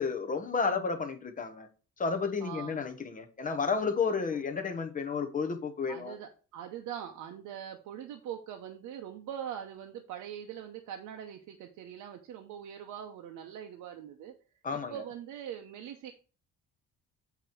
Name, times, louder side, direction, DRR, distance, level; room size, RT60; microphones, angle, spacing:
voice 1, 0.0-1.7 2.0-6.2 14.6-15.0, left 5 dB, 25° left, 0.8 m, -32 dB
voice 2, 2.4-2.8 5.9-14.3 14.7-16.1, right 9 dB, 80° right, 0.8 m, -42 dB
8.1 x 3.0 x 5.8 m
cardioid pair, 150°, 31 cm